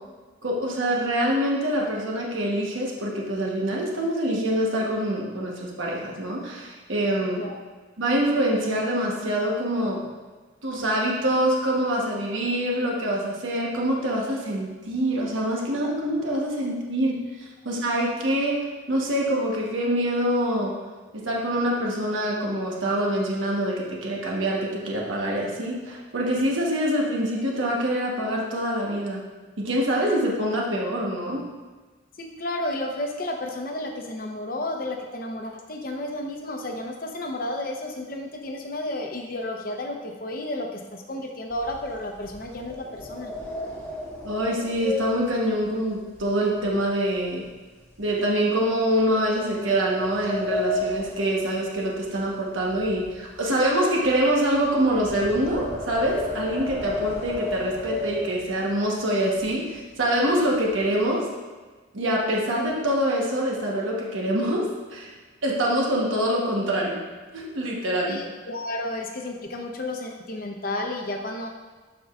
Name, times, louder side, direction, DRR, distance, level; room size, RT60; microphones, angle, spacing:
voice 1, 0.4-7.4 8.0-10.0 10.6-17.2 17.6-18.6 18.9-20.8 21.1-29.2 29.6-31.4 44.2-47.4 48.0-61.3 61.9-65.1 65.4-67.0 67.3-68.2, right 1 dB, 80° right, -2 dB, 1.2 m, -25 dB
voice 2, 32.2-43.3 68.1-71.5, left 1 dB, 45° left, 2 dB, 0.8 m, -32 dB
sound 1, 41.5-46.9 47.2-47.5 48.0-48.1 49.0-52.3 52.5-58.8 59.4-59.5 59.8-60.1 60.4-61.0, left 1 dB, 10° left, 1.2 m, -34 dB
12.5 x 4.7 x 2.5 m, 1.3 s
head